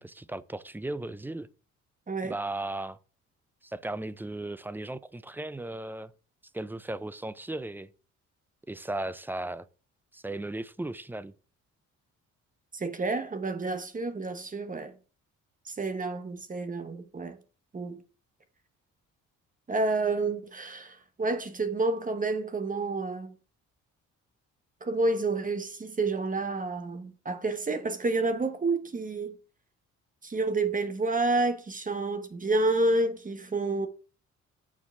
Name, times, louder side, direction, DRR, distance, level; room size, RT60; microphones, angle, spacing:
voice 1, 0.0-1.5 2.2-3.0 3.6-6.1 6.5-7.9 8.7-9.6 10.1-11.3, right 2 dB, 5° right, 0.4 m, -36 dB
voice 2, 2.1-2.4 12.7-14.9 15.6-17.4 17.7-18.0 19.7-23.3 24.8-29.4 30.2-33.9, right 2 dB, 25° right, 1.1 m, -29 dB
6.9 x 4.6 x 5.7 m
cardioid pair, 90°, 30 cm